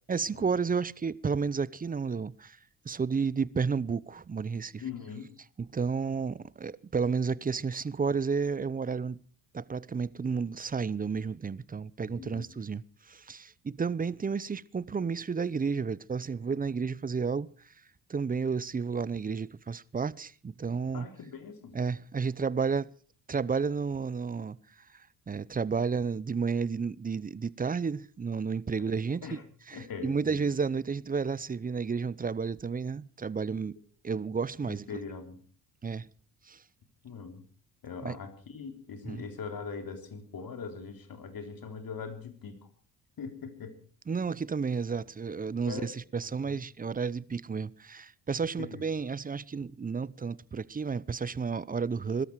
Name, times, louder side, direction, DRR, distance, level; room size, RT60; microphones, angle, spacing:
voice 1, 0.1-2.6 2.8-4.8 5.6-9.2 9.5-17.5 18.1-21.1 21.7-22.9 23.3-24.6 24.9-29.4 29.7-33.8 34.0-34.9 35.8-36.1 36.5-36.6 38.0-38.2 39.0-39.2 44.1-52.2, right 5 dB, 20° right, 0.7 m, -32 dB
voice 2, 4.8-5.3 12.0-12.6 20.9-21.8 28.8-28.9 29.2-29.4 29.7-30.4 34.6-35.4 37.0-37.4 37.8-42.7 43.2-43.8 45.7-45.9 46.2-46.6 48.6-48.8, left 5 dB, 50° left, 3.6 m, -41 dB
21.5 x 13.0 x 4.7 m
hypercardioid pair, 65°, 43 cm